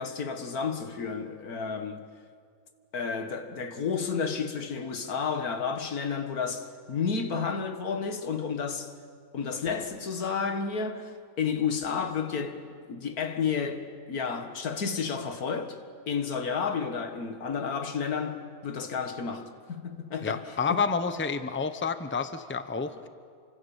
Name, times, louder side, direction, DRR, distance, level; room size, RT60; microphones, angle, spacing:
voice 1, 0.0-2.0 2.9-8.9 9.3-15.8 16.1-20.8, left 6 dB, 85° left, 2.1 m, -31 dB
voice 2, 20.2-23.1, left 5 dB, 10° left, 0.7 m, -29 dB
28.5 x 25.5 x 7.2 m
omnidirectional pair, 1.5 m